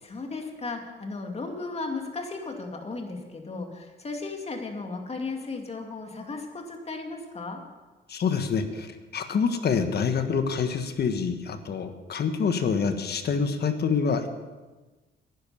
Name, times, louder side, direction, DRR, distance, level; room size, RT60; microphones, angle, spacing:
voice 1, 0.0-7.6, left 3 dB, 30° left, 3 dB, 2.4 m, -35 dB
voice 2, 8.1-8.9 9.1-14.3, left 6 dB, 55° left, 8 dB, 1.5 m, -26 dB
11.0 x 10.5 x 7.0 m, 1.2 s
cardioid pair, 90°, 20 cm